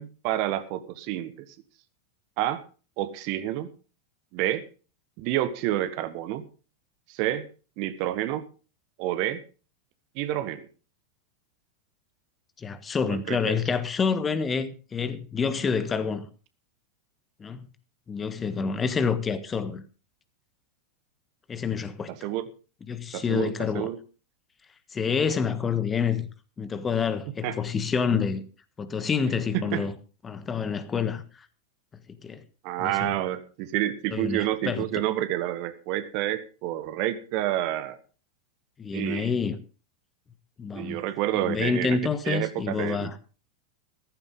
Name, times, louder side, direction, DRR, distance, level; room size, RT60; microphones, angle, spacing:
voice 1, 0.0-1.3 2.4-2.6 3.0-3.7 4.3-4.7 5.2-6.5 7.1-7.5 7.8-8.5 9.0-9.4 10.1-10.7 13.1-13.6 22.1-22.4 23.1-24.0 27.4-27.5 28.1-28.2 29.5-29.8 32.6-38.0 38.9-39.3 40.7-42.0 42.2-43.1, right 13 dB, 45° right, 1.3 m, -29 dB
voice 2, 12.6-16.3 17.4-17.7 18.1-19.8 21.5-22.1 22.9-23.9 24.9-26.3 26.6-28.4 28.8-29.9 30.2-31.5 32.2-32.4 32.8-33.1 34.1-34.8 38.8-39.6 40.6-41.0 41.3-43.2, left 5 dB, 20° left, 1.4 m, -28 dB
15.0 x 14.5 x 3.8 m
figure-of-eight pair, 90°, 0 cm